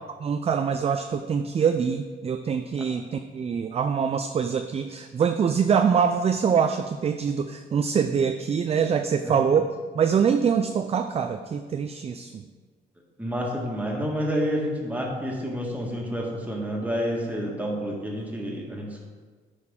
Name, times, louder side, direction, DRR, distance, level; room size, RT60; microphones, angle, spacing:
voice 1, 0.2-9.7 9.9-12.4, right 6 dB, 30° right, 7 dB, 0.3 m, -24 dB
voice 2, 13.2-19.1, equal, 10° right, -2 dB, 1.6 m, -29 dB
9.6 x 4.2 x 3.7 m, 1.5 s
cardioid pair, 90°, 20 cm